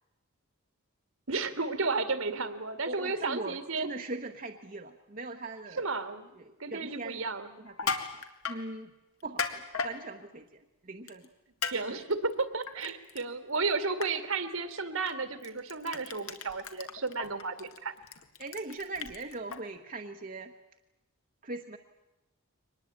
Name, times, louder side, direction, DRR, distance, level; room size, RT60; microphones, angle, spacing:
voice 1, 1.3-3.9 5.8-6.3 6.6-7.5 11.7-17.9, right 4 dB, 65° right, 11 dB, 1.9 m, -33 dB
voice 2, 2.9-5.8 6.4-7.2 7.6-8.1 8.5-8.9 9.2-11.3 18.4-20.5 21.4-21.8, right 2 dB, 35° right, 4 dB, 1.1 m, -40 dB
Crushing, 7.7-8.6 9.2-9.9 11.1-11.3 11.6-11.8 12.1-13.2 13.6-13.7 14.0-14.1 15.0-15.1 15.4-19.6, left 5 dB, 75° left, 2.0 m, -35 dB
24.0 x 20.0 x 8.7 m, 0.97 s
head